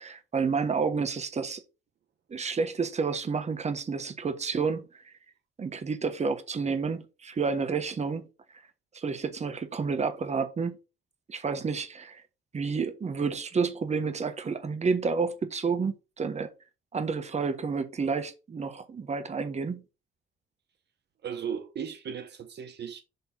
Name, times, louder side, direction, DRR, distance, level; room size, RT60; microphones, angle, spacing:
voice 1, 0.0-1.6 2.3-4.9 5.6-8.3 8.9-10.8 11.3-12.2 12.5-16.5 16.9-19.8, right 5 dB, 35° right, 1.3 m, -30 dB
voice 2, 21.2-23.0, right 7 dB, 60° right, 1.0 m, -36 dB
6.8 x 3.3 x 5.8 m
cardioid pair, 90°, 20 cm